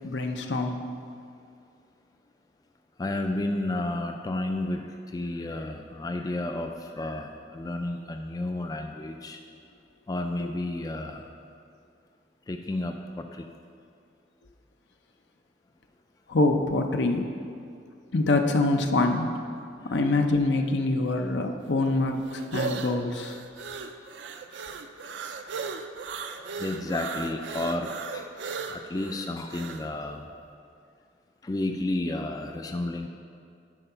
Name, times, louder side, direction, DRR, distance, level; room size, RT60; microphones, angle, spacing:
voice 1, 0.0-0.8 16.3-17.3 18.1-19.3 19.8-23.4, left 2 dB, 75° left, 5 dB, 0.7 m, -25 dB
voice 2, 3.0-9.4 10.1-11.3 12.5-13.5 25.4-25.5 26.4-28.3 28.7-30.2 31.4-33.1, left 2 dB, 20° left, 4 dB, 0.3 m, -32 dB
sound 1, 21.6-29.9, right 5 dB, 75° right, 0.5 m, -36 dB
11.0 x 4.7 x 5.6 m, 2.4 s
head